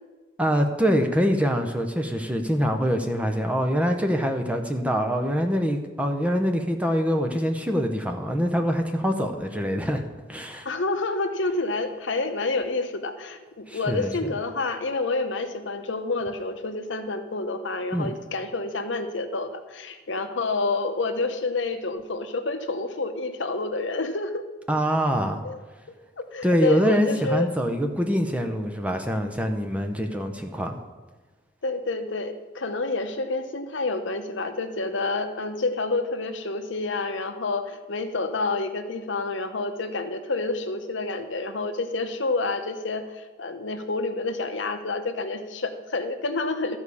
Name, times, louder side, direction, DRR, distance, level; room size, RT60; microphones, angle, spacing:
voice 1, 0.4-10.7 13.7-14.3 17.9-18.1 24.7-25.4 26.4-30.8, equal, 5° right, 4 dB, 0.7 m, -24 dB
voice 2, 10.6-24.4 25.4-25.6 26.2-27.5 31.6-46.8, left 3 dB, 70° left, 7 dB, 0.9 m, -28 dB
13.0 x 4.8 x 7.0 m, 1.2 s
head